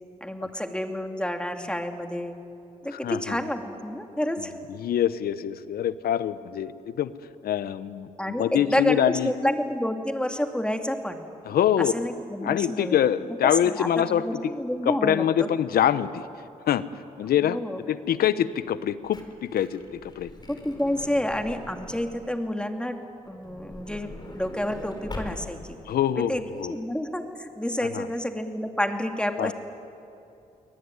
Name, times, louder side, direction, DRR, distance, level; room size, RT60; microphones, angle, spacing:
voice 1, 0.2-2.4 2.8-4.5 8.2-11.2 11.8-13.0 13.4-15.5 17.4-17.8 20.5-23.0 23.3-25.8 26.2-26.4 26.7-29.5, left 1 dB, 5° left, 5 dB, 2.7 m, -29 dB
voice 2, 2.9-3.4 4.7-7.1 7.4-8.1 8.4-9.3 11.4-11.9 12.4-14.3 14.8-16.2 16.7-16.8 17.2-17.6 17.9-20.3 25.9-26.3 26.6-26.7 27.8-28.1 29.4-29.5, left 10 dB, 75° left, 15 dB, 0.9 m, -24 dB
Truck / Door, 19.0-22.2 23.2-25.8 26.5-26.6 26.8-26.9, left 1 dB, 25° left, 4.6 m, -42 dB
24.5 x 19.0 x 9.7 m, 2.7 s
supercardioid pair, 55°, 16 cm